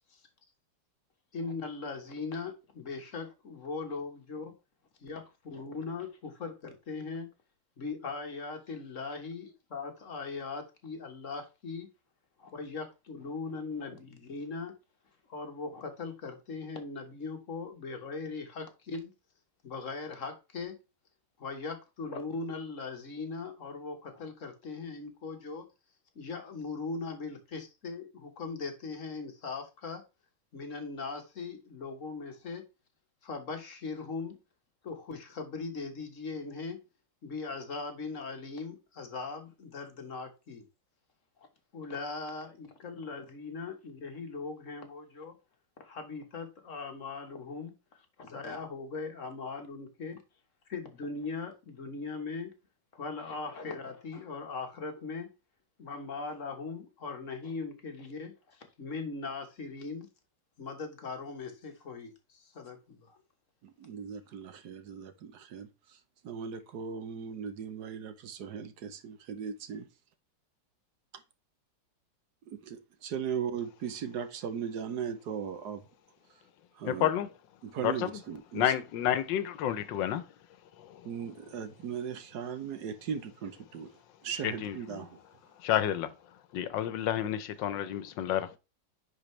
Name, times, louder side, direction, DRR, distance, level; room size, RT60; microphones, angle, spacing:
voice 1, 1.3-4.5 5.0-7.3 7.8-11.9 12.4-14.7 15.3-19.1 19.6-20.8 21.4-25.6 26.1-30.0 30.5-32.6 33.2-34.4 34.8-36.8 37.2-40.6 41.4-41.5 41.7-45.3 45.8-50.2 50.7-52.5 52.9-55.3 55.8-60.1 60.6-63.2, left 4 dB, 45° left, 1.6 m, -39 dB
voice 2, 63.6-66.0 66.2-69.8 72.4-75.8 76.7-77.1 77.6-78.7 81.0-83.9 84.2-85.2, right 7 dB, 65° right, 1.4 m, -38 dB
voice 3, 76.8-77.3 77.8-77.9 78.5-80.2 84.4-84.7 85.6-86.1 86.5-88.6, left 11 dB, 85° left, 1.5 m, -29 dB
10.0 x 4.5 x 3.2 m
omnidirectional pair, 1.9 m